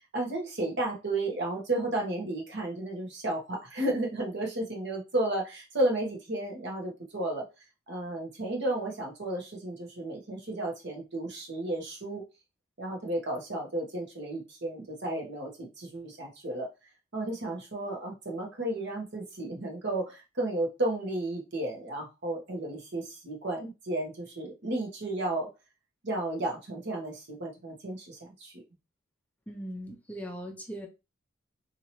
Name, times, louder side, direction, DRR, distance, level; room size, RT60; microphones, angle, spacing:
voice 1, 0.0-7.4 7.9-12.2 12.8-16.7 17.1-25.5 26.0-28.6, right 1 dB, 60° right, 1.2 m, -33 dB
voice 2, 29.5-30.9, equal, 10° left, 0.5 m, -39 dB
2.8 x 2.8 x 2.9 m
head